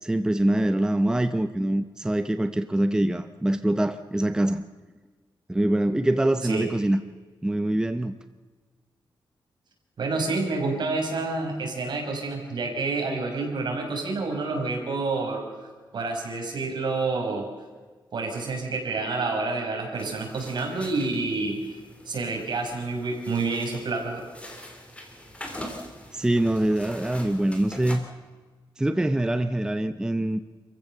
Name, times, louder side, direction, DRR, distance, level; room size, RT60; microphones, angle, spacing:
voice 1, 0.0-4.6 5.5-7.0 7.4-8.1 26.1-28.0 28.8-30.4, right 1 dB, 10° right, 9 dB, 0.7 m, -24 dB
voice 2, 10.0-15.5 15.9-17.5 18.1-21.7 22.1-24.2, right 3 dB, 60° right, 1 dB, 5.8 m, -28 dB
sound 1, 20.0-28.0, left 1 dB, 15° left, 3.2 m, -43 dB
27.5 x 15.5 x 6.8 m, 1.4 s
wide cardioid pair, 165°, 8 cm